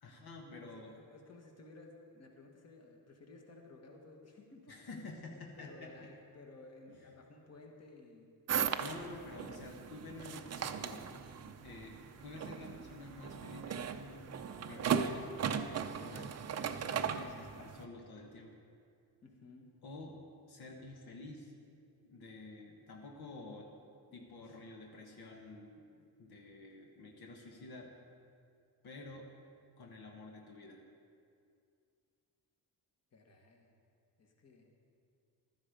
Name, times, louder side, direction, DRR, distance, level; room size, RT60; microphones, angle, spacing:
voice 1, 0.0-0.9 4.7-6.1 6.9-7.1 8.8-11.1 11.6-14.3 14.7-16.4 16.8-18.6 19.8-21.5 22.0-23.7 24.1-27.9 28.8-29.3 29.8-30.8, left 2 dB, 65° left, 1 dB, 1.5 m, -50 dB
voice 2, 0.6-4.9 5.6-8.4 17.2-17.5 19.2-19.7 24.1-24.6 33.1-33.7 34.2-34.7, left 2 dB, 40° left, 1 dB, 1.7 m, -56 dB
sound 1, 8.5-17.8, right 7 dB, 40° right, 0.6 m, -38 dB
15.0 x 12.5 x 5.2 m, 2.4 s
cardioid pair, 160°, 41 cm